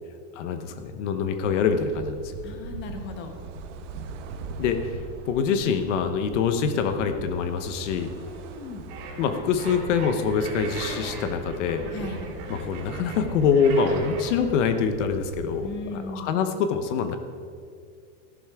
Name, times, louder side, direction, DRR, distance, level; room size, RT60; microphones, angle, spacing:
voice 1, 0.3-2.3 4.6-5.0 5.3-8.1 9.2-11.9 12.5-17.2, left 6 dB, 75° left, 8 dB, 1.1 m, -25 dB
sound 1, 1.4-15.8, right 4 dB, 75° right, 1.2 m, -41 dB
voice 2, 2.4-3.3 8.2-8.9 11.9-12.3 15.6-16.5, left 4 dB, 30° left, 5 dB, 1.2 m, -37 dB
sound 2, 8.9-14.3, right 4 dB, 45° right, 2.8 m, -38 dB
14.0 x 11.5 x 3.6 m, 2.2 s
supercardioid pair, 165°, 36 cm